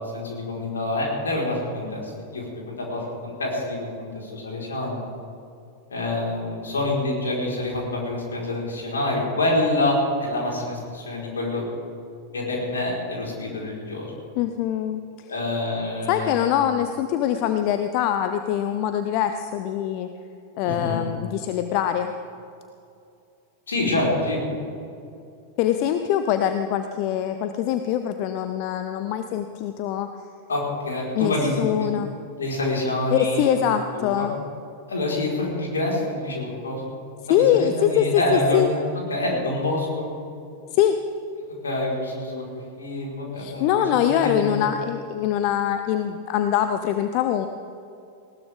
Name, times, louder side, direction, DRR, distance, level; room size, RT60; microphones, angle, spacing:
voice 1, 0.1-5.0 5.9-11.6 12.3-14.1 15.3-16.6 20.6-21.0 23.7-24.4 30.5-31.9 32.3-33.6 33.9-34.3 34.9-36.9 37.3-38.8 39.1-40.1 41.6-42.5 42.8-43.7 44.1-44.6, left 2 dB, 70° left, -3 dB, 4.7 m, -26 dB
voice 2, 14.4-15.3 16.1-20.1 20.6-22.1 25.6-30.1 31.1-32.1 33.1-34.4 37.3-38.7 40.7-41.0 43.4-47.5, left 10 dB, 45° left, 8 dB, 0.7 m, -23 dB
19.5 x 18.5 x 3.7 m, 2.6 s
figure-of-eight pair, 90°, 0 cm